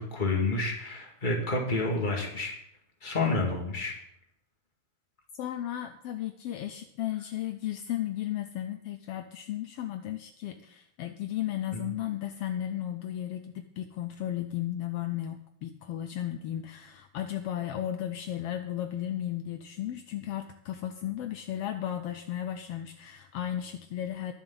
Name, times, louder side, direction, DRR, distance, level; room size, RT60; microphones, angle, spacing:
voice 1, 0.0-2.5 3.0-3.9 11.7-11.8, left 3 dB, 20° left, 0 dB, 2.0 m, -29 dB
voice 2, 5.4-24.3, left 12 dB, 80° left, 8 dB, 1.3 m, -34 dB
21.5 x 7.1 x 4.0 m, 0.75 s
omnidirectional pair, 3.4 m